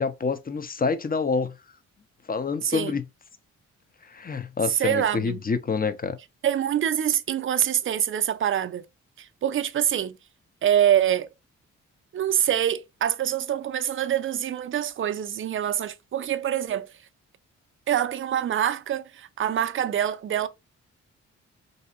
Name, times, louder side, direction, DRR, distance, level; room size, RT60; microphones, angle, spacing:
voice 1, 0.0-1.5 2.3-3.0 4.0-6.2, left 5 dB, 25° left, 0.6 m, -27 dB
voice 2, 2.6-2.9 4.8-5.4 6.4-8.8 9.2-10.2 10.6-11.3 12.1-16.9 17.9-20.5, right 10 dB, 35° right, 0.5 m, -25 dB
4.0 x 2.7 x 2.4 m
hypercardioid pair, 45°, 35 cm